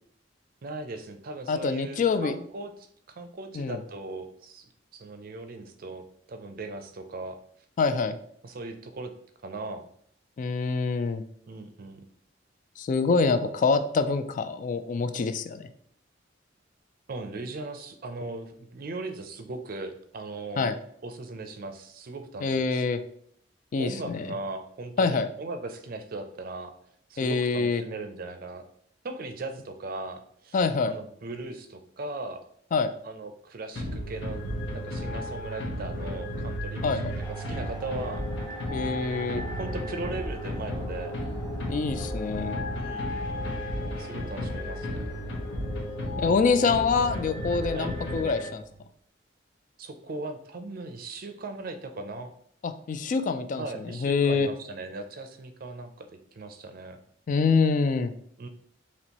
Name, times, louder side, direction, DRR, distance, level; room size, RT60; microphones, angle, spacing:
voice 1, 0.6-7.4 8.4-9.1 9.4-9.8 11.5-12.1 17.1-20.7 21.0-22.8 23.8-26.7 27.1-28.6 29.0-30.6 30.9-32.4 33.0-34.4 34.7-37.0 37.3-38.3 39.5-41.1 42.7-43.1 43.9-45.1 47.7-47.9 49.8-52.3 53.6-56.1 56.3-57.0 58.4-58.5, right 2 dB, 50° right, 8 dB, 0.5 m, -38 dB
voice 2, 1.5-2.3 3.5-3.8 7.8-8.2 10.4-11.2 12.8-15.7 20.6-20.8 22.4-23.0 23.7-24.3 25.0-25.3 27.2-27.8 30.5-30.9 32.7-32.9 36.8-37.1 38.7-39.4 41.7-42.6 46.2-48.6 52.6-54.5 57.3-58.1, left 4 dB, 45° left, 10 dB, 0.3 m, -25 dB
sound 1, 33.7-48.8, left 1 dB, 70° left, 0.9 m, -33 dB
sound 2, 37.2-46.2, right 2 dB, 15° left, 1.4 m, -47 dB
4.3 x 3.0 x 2.9 m, 0.64 s
head